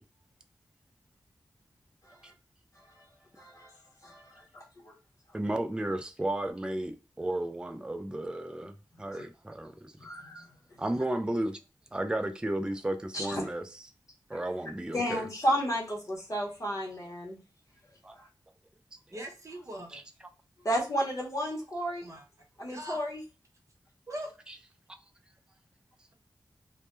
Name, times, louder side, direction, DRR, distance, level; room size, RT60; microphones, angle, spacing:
voice 1, 3.4-3.7 4.0-4.9 9.1-9.2 10.0-10.4 13.1-13.5 14.9-17.4 18.1-18.3 20.6-22.1 22.6-23.2, equal, 40° left, 0.8 m, -32 dB
voice 2, 5.3-9.9 10.8-11.6 11.9-13.8 14.3-15.3 18.0-18.2 19.1-19.2 19.9-20.0 24.5-24.6, right 1 dB, 10° right, 0.3 m, -33 dB
voice 3, 19.1-20.0 22.0-22.2 22.7-23.0 24.1-24.3, right 1 dB, 40° right, 0.9 m, -40 dB
2.1 x 2.1 x 2.9 m
wide cardioid pair, 80°, 8 cm